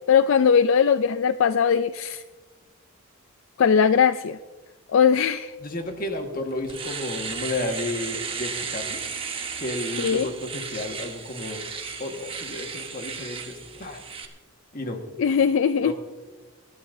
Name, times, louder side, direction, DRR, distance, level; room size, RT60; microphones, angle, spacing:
voice 1, 0.1-2.2 3.6-4.4 4.9-5.5 10.0-10.3 15.2-15.9, left 7 dB, 65° left, 12 dB, 0.3 m, -20 dB
voice 2, 5.6-9.0 9.6-11.6 12.0-14.0 14.7-15.0 15.8-15.9, left 2 dB, 40° left, 4 dB, 1.6 m, -32 dB
Domestic sounds home sounds, 6.0-6.1 6.5-14.3, right 6 dB, 25° right, 1.1 m, -34 dB
25.5 x 11.5 x 2.7 m, 1.3 s
head